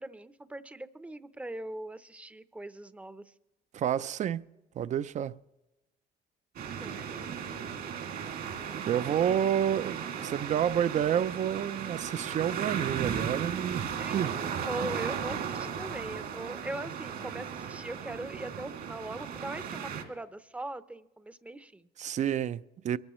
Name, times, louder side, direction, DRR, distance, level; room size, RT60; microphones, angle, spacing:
voice 1, 0.0-3.2 6.7-7.3 14.0-22.2, right 1 dB, 10° right, 0.7 m, -41 dB
voice 2, 3.7-4.4 4.8-5.3 8.8-14.3 22.0-23.0, right 9 dB, 45° right, 0.5 m, -29 dB
sound 1, 6.6-20.0, right 7 dB, 65° right, 2.4 m, -36 dB
23.0 x 14.0 x 3.1 m
cardioid pair, 110°, 17 cm